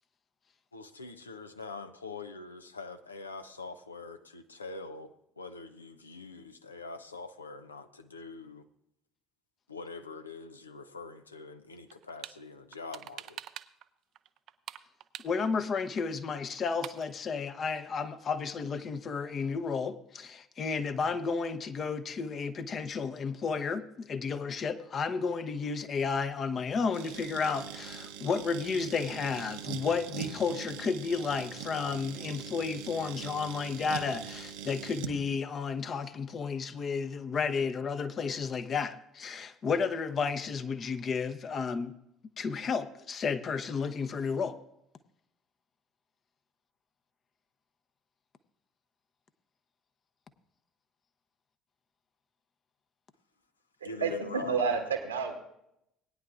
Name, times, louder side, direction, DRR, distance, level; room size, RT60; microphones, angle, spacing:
voice 1, 0.7-8.7 9.7-13.4 53.8-54.7, left 4 dB, 90° left, 0.6 m, -44 dB
sound 1, 11.9-12.4 12.7-13.9 14.1-15.7 16.0-16.1 16.3-16.4 16.6-17.1, right 12 dB, 55° right, 0.5 m, -44 dB
voice 2, 15.2-41.9 42.4-44.5, left 5 dB, 40° left, 0.9 m, -32 dB
sound 2, 26.9-35.2, right 8 dB, 70° right, 0.9 m, -42 dB
voice 3, 53.8-55.3, right 5 dB, 85° right, 1.5 m, -30 dB
19.5 x 9.8 x 2.5 m
figure-of-eight pair, 60°, 0 cm